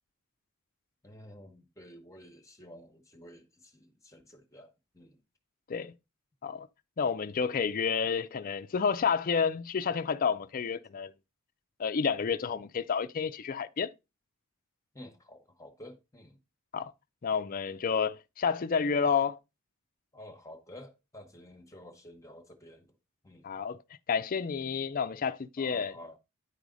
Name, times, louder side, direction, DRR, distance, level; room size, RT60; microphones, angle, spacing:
voice 1, 1.0-5.2 14.9-16.4 20.1-22.9 23.2-23.5 25.6-26.2, left 1 dB, 15° left, 1.0 m, -51 dB
voice 2, 7.0-11.1 11.8-13.9 16.7-16.9 17.2-19.4 23.4-23.8 24.1-25.9, left 6 dB, 40° left, 0.4 m, -30 dB
9.9 x 4.8 x 3.9 m
head